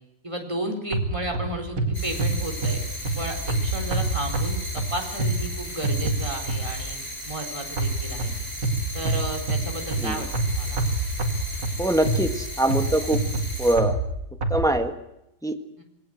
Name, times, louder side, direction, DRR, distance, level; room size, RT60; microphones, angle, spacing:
voice 1, 0.2-2.9 3.2-7.0 7.3-8.3 8.9-10.8 15.8-15.9, right 1 dB, 15° right, 2 dB, 4.2 m, -33 dB
sound 1, 0.9-7.0 7.8-14.6, right 2 dB, 75° right, 3.1 m, -27 dB
sound 2, 1.9-13.8, equal, 30° left, 7.3 m, -36 dB
voice 2, 11.8-13.2 13.6-14.0 14.5-14.9 15.4-15.6, right 1 dB, ahead, 6 dB, 1.6 m, -23 dB
27.0 x 19.5 x 7.9 m, 0.85 s
omnidirectional pair, 1.9 m